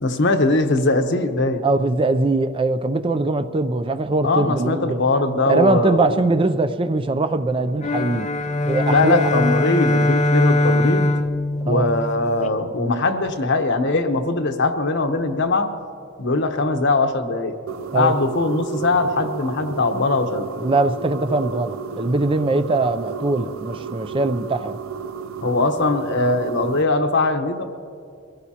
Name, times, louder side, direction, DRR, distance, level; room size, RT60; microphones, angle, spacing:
voice 1, 0.0-1.6 4.2-6.2 8.9-11.1 11.6-15.7 16.2-17.5 17.9-20.5 25.4-27.6, left 2 dB, 65° left, 6 dB, 1.0 m, -21 dB
voice 2, 1.6-5.0 5.5-8.3 8.6-9.3 11.7-11.9 17.9-18.1 20.6-24.8, right 2 dB, 25° right, 10 dB, 0.5 m, -21 dB
sound 1, 7.8-12.5, left 1 dB, 35° left, 0.6 m, -21 dB
sound 2, 17.7-26.8, right 7 dB, 80° right, 0.5 m, -33 dB
24.0 x 16.5 x 2.9 m, 2.4 s
head